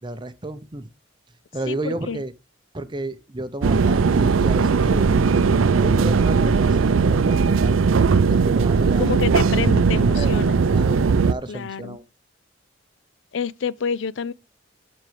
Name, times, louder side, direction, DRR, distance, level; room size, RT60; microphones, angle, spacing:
voice 1, 0.0-0.9 1.5-2.3 2.7-5.1 5.8-7.8 8.3-9.2 9.9-10.4 10.7-12.0, right 2 dB, 25° right, 0.6 m, -32 dB
voice 2, 1.7-2.2 9.0-10.6 11.5-12.0 13.3-14.3, left 6 dB, 70° left, 0.4 m, -28 dB
sound 1, 3.6-11.3, right 5 dB, 90° right, 0.5 m, -18 dB
12.5 x 5.2 x 3.3 m
head